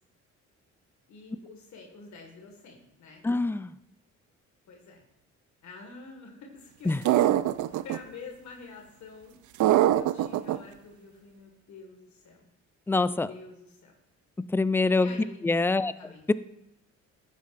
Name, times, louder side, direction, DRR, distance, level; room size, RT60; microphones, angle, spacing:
voice 1, 1.1-3.2 4.7-5.0 5.6-6.9 7.7-9.4 9.9-12.5 12.9-13.9 15.0-15.4 16.0-16.3, left 4 dB, 70° left, 1 dB, 1.8 m, -47 dB
voice 2, 3.2-3.7 6.9-7.0 12.9-13.3 14.4-15.9, left 3 dB, 10° left, 15 dB, 0.3 m, -25 dB
sound 1, 7.1-8.0 9.6-10.6, right 13 dB, 75° right, 0.5 m, -22 dB
12.0 x 9.1 x 2.5 m, 0.86 s
cardioid pair, 90°, 30 cm